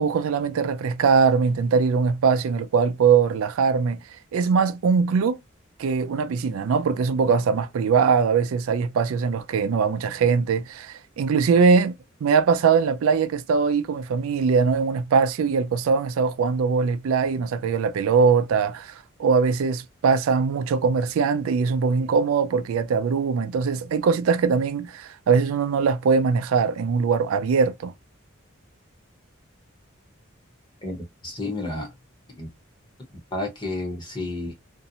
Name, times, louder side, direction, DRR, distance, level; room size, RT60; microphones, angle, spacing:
voice 1, 0.0-4.0 4.3-5.4 5.8-11.9 12.2-27.9, right 5 dB, 85° right, 0.3 m, -21 dB
voice 2, 30.8-31.9 32.4-32.5 33.3-34.5, left 2 dB, 20° left, 0.8 m, -31 dB
2.6 x 2.0 x 2.7 m
head